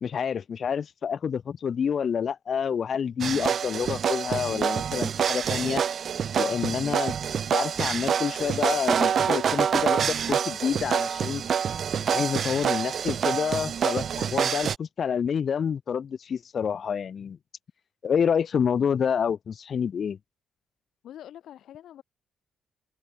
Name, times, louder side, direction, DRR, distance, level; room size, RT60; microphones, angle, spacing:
voice 1, 0.0-5.8 6.4-7.1 7.5-11.4 12.1-17.4 18.0-20.2, left 7 dB, 50° left, 0.5 m, -28 dB
sound 1, 3.2-14.8, right 8 dB, 55° right, 0.3 m, -26 dB
voice 2, 21.0-22.0, left 11 dB, 75° left, 4.6 m, -45 dB
open air
cardioid pair, 105°, 0 cm